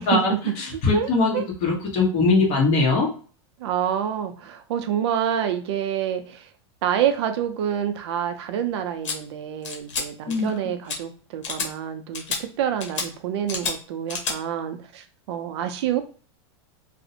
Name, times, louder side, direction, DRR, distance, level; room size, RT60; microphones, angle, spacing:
voice 1, 0.0-3.1 10.3-10.5, left 3 dB, 40° left, -1 dB, 1.0 m, -21 dB
voice 2, 0.9-1.5 3.6-6.5 6.8-16.0, right 9 dB, 65° right, 7 dB, 0.4 m, -27 dB
sound 1, 9.0-9.2 9.6-10.0 10.3-10.6 10.9-11.0 11.4-11.7 12.1-12.4 12.8-13.1 13.5-13.7 14.1-14.4, left 5 dB, 90° left, 0.8 m, -29 dB
2.5 x 2.0 x 2.6 m, 0.40 s
supercardioid pair, 145°, 15 cm